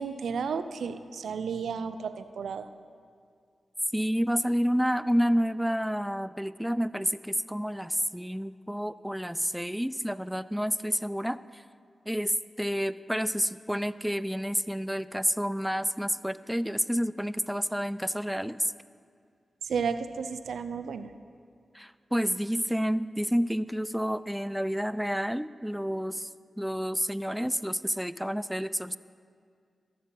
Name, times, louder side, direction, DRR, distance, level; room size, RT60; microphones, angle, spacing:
voice 1, 0.0-2.7 19.7-21.1, right 6 dB, 90° right, 11 dB, 0.4 m, -32 dB
voice 2, 3.9-11.6 12.1-18.7 21.7-26.3 26.6-29.0, equal, 5° right, 16 dB, 0.3 m, -29 dB
13.0 x 7.5 x 5.6 m, 2.2 s
cardioid pair, 45°, 0 cm